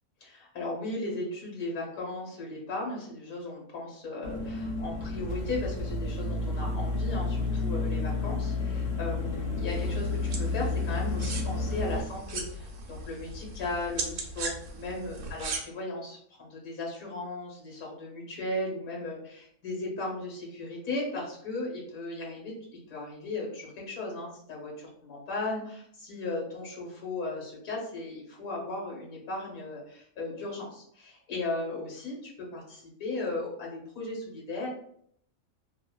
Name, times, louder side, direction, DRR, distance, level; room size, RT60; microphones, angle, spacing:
voice 1, 0.2-34.7, left 2 dB, 80° left, -2 dB, 1.5 m, -36 dB
sound 1, 4.2-12.0, left 3 dB, 55° left, 0.8 m, -31 dB
sound 2, 9.7-15.6, right 3 dB, 70° right, 0.9 m, -39 dB
2.9 x 2.7 x 2.2 m, 0.65 s
omnidirectional pair, 1.4 m